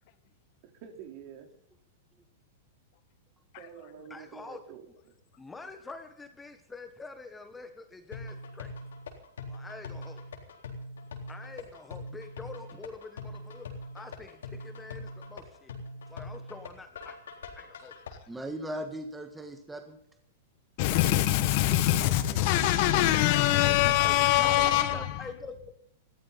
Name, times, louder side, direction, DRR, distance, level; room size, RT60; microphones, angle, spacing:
voice 1, 0.6-1.5 3.6-5.1 21.7-23.3, right 8 dB, 50° right, 3.8 m, -47 dB
voice 2, 4.1-4.6 5.4-8.7 9.5-10.2 11.3-13.7 13.9-15.7 16.1-17.2 17.5-17.9 23.7-25.7, left 3 dB, 10° left, 1.4 m, -46 dB
sound 1, 8.1-18.1, left 2 dB, 90° left, 3.8 m, -42 dB
voice 3, 18.3-20.0 24.4-25.0, right 1 dB, 10° right, 1.6 m, -39 dB
voice 4, 20.8-25.3, left 14 dB, 50° left, 1.6 m, -24 dB
20.0 x 14.5 x 4.1 m
hypercardioid pair, 135°, 0 cm